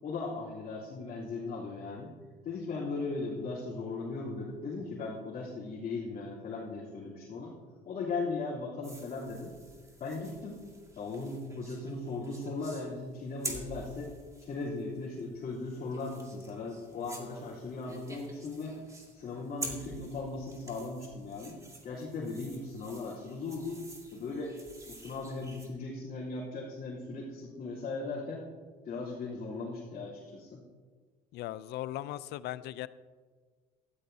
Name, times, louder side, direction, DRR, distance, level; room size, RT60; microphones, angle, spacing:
voice 1, 0.0-2.1 2.4-7.5 7.8-9.5 10.0-10.6 11.0-14.1 14.4-18.8 19.1-21.6 21.8-23.8 24.1-24.5 24.9-28.5 28.8-30.6, left 3 dB, 55° left, -8 dB, 3.5 m, -38 dB
sound 1, 8.8-25.7, right 2 dB, 20° right, 2.2 m, -48 dB
voice 2, 31.3-32.9, left 14 dB, 80° left, 17 dB, 0.5 m, -38 dB
15.5 x 13.5 x 2.8 m, 1.5 s
cardioid pair, 110°, 17 cm